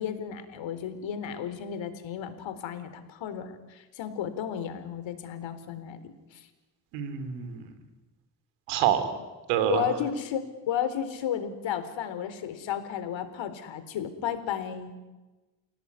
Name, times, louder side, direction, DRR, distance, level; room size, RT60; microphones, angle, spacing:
voice 1, 0.0-6.5 8.9-9.0 9.7-15.0, left 9 dB, 65° left, 10 dB, 4.1 m, -33 dB
voice 2, 6.9-7.7 8.7-9.0 9.5-9.9, right 10 dB, 80° right, 10 dB, 3.7 m, -26 dB
29.5 x 17.5 x 9.9 m, 1.2 s
supercardioid pair, 70°, 50 cm